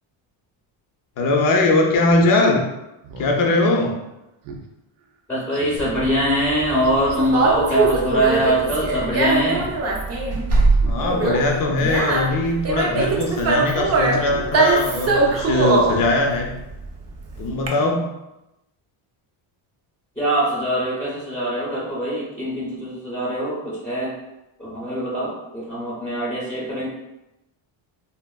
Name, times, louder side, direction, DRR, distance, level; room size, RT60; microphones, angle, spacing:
voice 1, 1.2-2.7 3.2-4.0 10.9-16.5 17.4-18.1, left 2 dB, 45° left, 1 dB, 0.5 m, -20 dB
Speech synthesizer, 2.0-2.2 2.6-2.7 3.0-3.4 3.8-3.9 4.4-4.6 5.0-5.1 5.5-5.9 6.8-7.2 8.1-8.5 8.7-8.8 9.4-9.8 10.0-10.3 10.7-11.0 11.4-11.5 11.9-12.1 13.0-13.3 13.6-13.8 14.2-14.5 14.9-15.0, right 4 dB, 90° right, 0.6 m, -38 dB
voice 2, 5.3-9.7 20.2-24.1 24.6-26.9, right 1 dB, 5° left, -7 dB, 0.7 m, -23 dB
Conversation, 5.8-17.7, right 3 dB, 35° right, 0.5 m, -21 dB
3.4 x 2.0 x 2.2 m, 0.92 s
cardioid pair, 115°, 49 cm